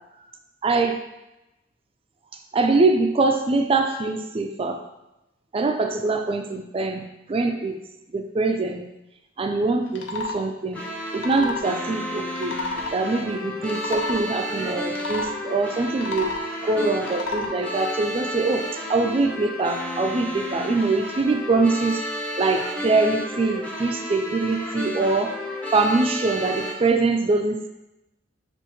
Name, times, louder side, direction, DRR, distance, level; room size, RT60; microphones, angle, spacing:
voice 1, 0.6-1.0 2.5-4.8 5.5-7.0 7.3-7.8 8.1-8.9 9.4-10.8 11.1-12.6 12.9-16.3 16.6-22.0 22.4-25.3 25.7-27.7, right 3 dB, 30° right, 6 dB, 0.4 m, -23 dB
sound 1, 9.9-10.4 11.0-11.7 12.3-12.9 13.6-14.2 14.9-15.3 15.9-16.5 17.0-17.5, left 3 dB, 75° left, 0.6 m, -31 dB
sound 2, 10.7-26.7, equal, 10° left, 0.6 m, -32 dB
6.8 x 2.5 x 3.0 m, 0.93 s
head